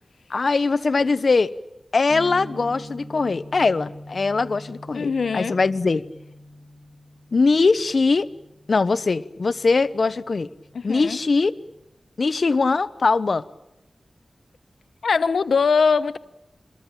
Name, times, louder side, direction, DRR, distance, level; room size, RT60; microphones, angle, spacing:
voice 1, 0.3-1.5 1.9-6.0 7.3-8.3 8.7-10.5 10.8-11.5 12.2-13.4, left 4 dB, 65° left, 0.9 m, -21 dB
sound 1, 2.1-11.9, equal, 70° right, 3.5 m, -44 dB
voice 2, 4.9-5.6 10.9-11.2 15.0-16.2, left 5 dB, 85° left, 1.0 m, -21 dB
25.5 x 21.5 x 8.9 m
cardioid pair, 55°, 0 cm